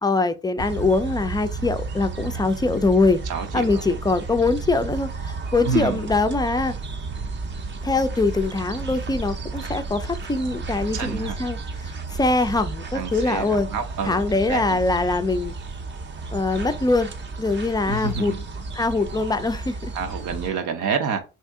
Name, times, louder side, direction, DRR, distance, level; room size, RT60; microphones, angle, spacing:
voice 1, 0.0-3.2 3.5-6.7 7.8-13.7 14.0-15.5 16.3-17.1 17.4-18.3 18.7-19.9, left 3 dB, 15° left, 0.3 m, -23 dB
sound 1, 0.6-20.5, right 4 dB, 40° right, 0.6 m, -33 dB
voice 2, 3.2-3.8 5.7-6.0 10.9-11.4 12.9-14.2 14.5-14.8 17.9-18.4 19.9-21.2, right 6 dB, 85° right, 0.7 m, -28 dB
2.8 x 2.5 x 3.5 m
cardioid pair, 90°, 30 cm